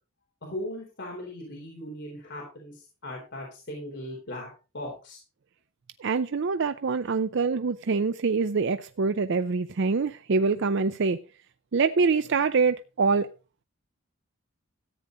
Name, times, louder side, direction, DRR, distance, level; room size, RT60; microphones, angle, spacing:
voice 1, 0.4-5.2, left 1 dB, 55° left, 3.8 m, -38 dB
voice 2, 6.0-11.2 11.7-13.3, right 4 dB, 60° right, 0.5 m, -25 dB
14.0 x 8.9 x 3.8 m
head